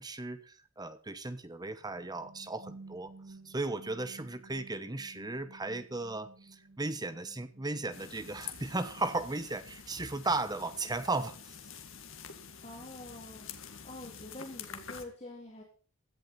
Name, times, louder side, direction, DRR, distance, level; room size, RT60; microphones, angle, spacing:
voice 1, 0.0-3.1 3.4-11.4, right 2 dB, 20° right, 12 dB, 1.0 m, -36 dB
sound 1, 1.7-9.5, right 3 dB, 60° right, 2.3 m, -55 dB
sound 2, 7.9-15.0, left 6 dB, 60° left, 2.1 m, -47 dB
voice 2, 12.6-13.5 13.8-15.6, left 1 dB, 30° left, -1 dB, 3.5 m, -46 dB
16.5 x 11.5 x 4.2 m, 0.40 s
head